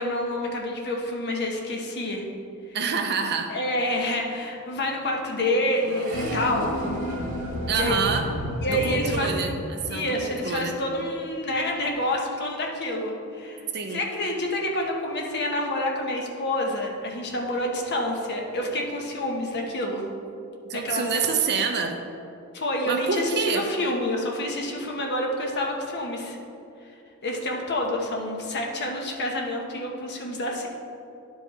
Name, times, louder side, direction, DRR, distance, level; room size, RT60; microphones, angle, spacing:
voice 1, 0.0-2.3 2.7-2.8 3.5-6.7 7.7-8.0 8.6-9.4 9.9-20.1 20.7-21.2 21.5-21.6 22.5-26.4 26.8-26.9 27.2-30.7, left 1 dB, 50° left, 0 dB, 1.1 m, -28 dB
voice 2, 2.7-3.6 7.7-8.3 8.7-10.7 13.7-14.0 20.6-22.0 22.9-23.7, right 5 dB, 50° right, 5 dB, 0.7 m, -27 dB
Accelerating revving vroom, 3.5-11.0 11.4-12.0, right 1 dB, 80° right, 2.0 m, -41 dB
sound 1, 6.1-10.4, equal, 75° left, 0.9 m, -32 dB
10.5 x 4.8 x 4.2 m, 2.7 s
head